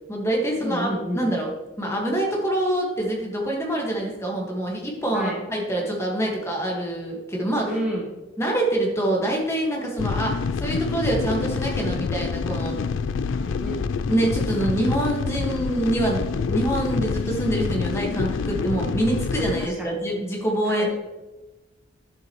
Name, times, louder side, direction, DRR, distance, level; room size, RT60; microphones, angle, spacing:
voice 1, 0.1-1.5 1.8-7.7 8.4-12.8 14.1-20.9, right 1 dB, 15° left, -1 dB, 1.6 m, -25 dB
voice 2, 0.6-1.3 5.1-5.4 7.6-8.1 13.4-13.8 19.6-19.9 20.6-20.9, equal, 5° right, -5 dB, 1.2 m, -30 dB
sound 1, 10.0-19.7, left 5 dB, 65° left, 0.3 m, -27 dB
11.0 x 7.5 x 3.1 m, 1.1 s
head